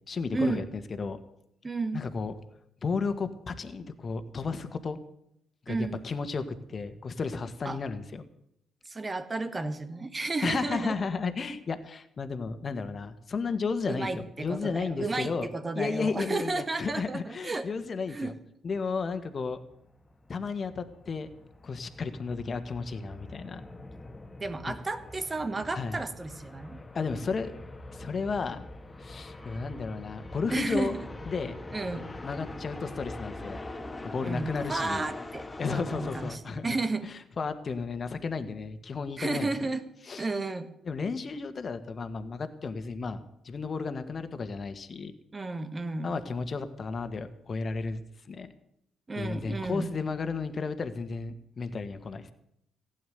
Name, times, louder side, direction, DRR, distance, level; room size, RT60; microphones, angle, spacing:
voice 1, 0.1-1.2 1.9-2.3 2.8-5.0 5.7-8.3 10.4-15.5 15.8-18.3 18.6-19.6 20.3-21.3 21.6-23.6 24.7-24.8 25.7-26.0 26.9-27.5 27.9-28.7 29.0-31.0 31.3-31.5 32.2-33.6 34.0-35.1 35.6-36.8 37.0-39.7 40.0-40.3 40.9-45.1 46.0-48.0 48.3-48.5 49.2-52.3, left 4 dB, 45° left, 9 dB, 1.7 m, -33 dB
voice 2, 1.6-2.0 5.7-6.1 7.7-7.8 8.9-10.9 13.9-17.7 18.1-18.3 24.4-26.8 30.5-31.0 31.7-32.0 34.2-37.1 39.2-39.8 40.2-40.7 45.3-46.1 49.1-49.9, right 3 dB, 30° right, 10 dB, 1.7 m, -32 dB
sound 1, 19.3-36.4, left 2 dB, 25° left, 1.9 m, -43 dB
15.5 x 8.5 x 9.5 m, 0.76 s
hypercardioid pair, 50°, 0 cm